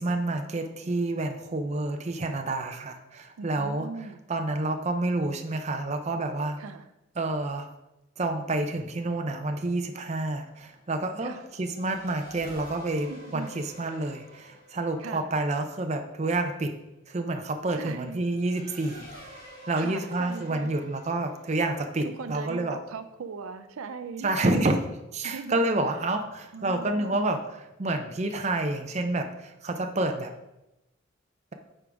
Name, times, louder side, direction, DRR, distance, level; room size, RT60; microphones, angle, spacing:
voice 1, 0.0-3.9 4.3-6.6 7.2-7.7 8.2-16.7 17.1-19.1 19.7-22.8 24.2-24.8 25.1-30.3, right 2 dB, 30° right, 5 dB, 0.5 m, -29 dB
voice 2, 3.4-4.2 6.6-6.8 11.2-11.4 13.1-13.6 15.0-15.3 17.7-18.2 19.8-20.7 22.0-24.6 25.2-25.7 26.5-27.2, right 4 dB, 80° right, 10 dB, 0.4 m, -39 dB
Race car auto racing / Accelerating revving vroom, 9.6-23.7, equal, 45° left, 2.7 m, -51 dB
8.9 x 4.8 x 3.5 m, 0.93 s
head